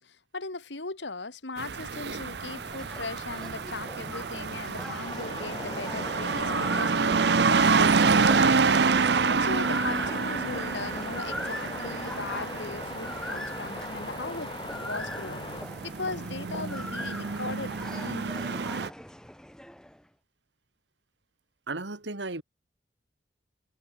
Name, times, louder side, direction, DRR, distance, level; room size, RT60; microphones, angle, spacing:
voice 1, 0.0-8.9 9.2-15.4 15.8-18.4, left 3 dB, 85° left, 2.4 m, -38 dB
sound 1, 1.6-18.9, right 5 dB, 70° right, 0.7 m, -28 dB
sound 2, 1.7-20.0, left 1 dB, 5° left, 1.1 m, -41 dB
sound 3, 5.0-15.6, left 2 dB, 25° left, 2.7 m, -40 dB
voice 2, 21.7-22.4, right 2 dB, 90° right, 2.2 m, -34 dB
head